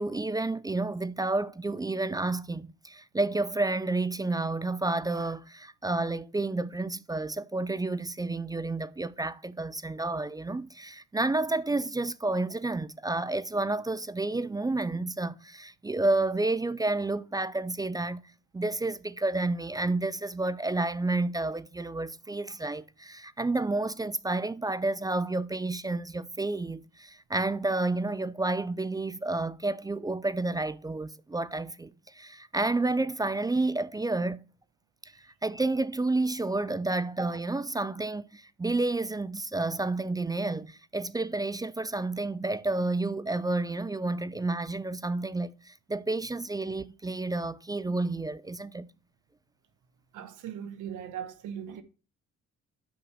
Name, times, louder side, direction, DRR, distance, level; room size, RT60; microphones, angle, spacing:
voice 1, 0.0-18.2 18.5-34.4 35.4-48.9, right 2 dB, 15° right, 0.3 m, -30 dB
voice 2, 50.1-51.8, right 9 dB, 90° right, 1.2 m, -39 dB
6.1 x 5.0 x 6.3 m
cardioid pair, 90°, 30 cm